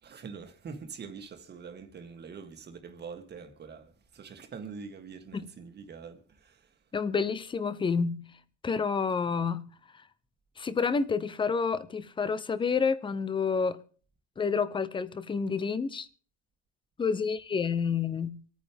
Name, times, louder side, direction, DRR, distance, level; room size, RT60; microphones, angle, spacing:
voice 1, 0.0-6.7, right 5 dB, 25° right, 1.7 m, -44 dB
voice 2, 6.9-8.3 8.6-9.7 10.6-13.8 14.4-16.1 17.0-18.4, left 5 dB, 10° left, 0.6 m, -29 dB
25.5 x 9.3 x 3.5 m
cardioid pair, 155°, 42 cm